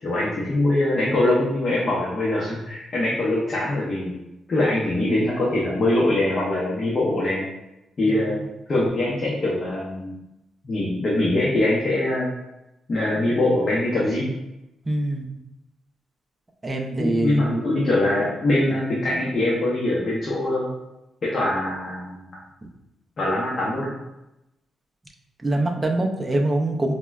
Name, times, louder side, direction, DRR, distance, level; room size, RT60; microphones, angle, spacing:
voice 1, 0.0-4.1 4.5-7.4 8.0-8.4 8.7-10.1 10.6-12.3 12.9-14.3 17.0-20.7 21.3-22.2 23.2-23.9, left 1 dB, 40° left, -5 dB, 0.6 m, -23 dB
voice 2, 14.9-15.3 16.6-17.6 25.4-26.9, right 2 dB, 15° right, 1 dB, 0.4 m, -24 dB
4.4 x 2.1 x 2.3 m, 0.92 s
cardioid pair, 120°, 0 cm